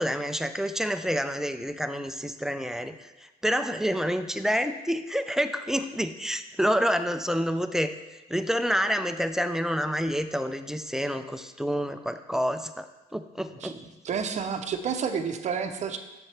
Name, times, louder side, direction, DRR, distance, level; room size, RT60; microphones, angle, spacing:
voice 1, 0.0-8.0 8.3-13.8, equal, 5° right, 9 dB, 0.4 m, -28 dB
voice 2, 13.5-16.0, right 6 dB, 45° right, 8 dB, 0.7 m, -30 dB
7.3 x 6.8 x 3.3 m, 1.1 s
cardioid pair, 110°, 17 cm